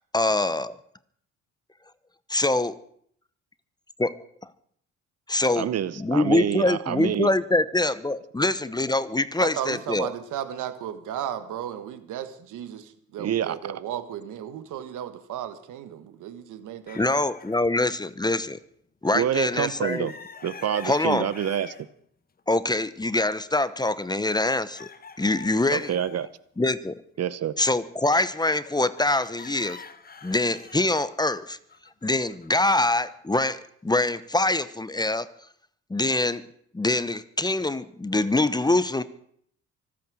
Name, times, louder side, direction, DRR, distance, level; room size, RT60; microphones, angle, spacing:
voice 1, 0.1-0.8 2.3-2.8 4.0-4.1 5.3-5.7 6.0-10.1 16.9-18.6 19.0-20.1 20.8-21.3 22.5-24.9 25.2-25.9 26.6-27.0 27.6-29.8 30.2-31.6 32.0-35.3 35.9-36.4 36.7-39.0, left 2 dB, 15° left, 0.9 m, -24 dB
voice 2, 5.6-7.3 13.2-13.7 19.1-20.1 20.4-21.7 25.7-26.3 27.2-27.5, right 9 dB, 55° right, 0.9 m, -27 dB
voice 3, 9.4-17.2, right 10 dB, 80° right, 1.6 m, -35 dB
sound 1, 16.9-17.6 19.6-21.9 22.4-22.5 24.5-26.4 28.5-33.1, left 5 dB, 30° left, 1.2 m, -45 dB
24.5 x 8.8 x 6.3 m
cardioid pair, 90°, 30 cm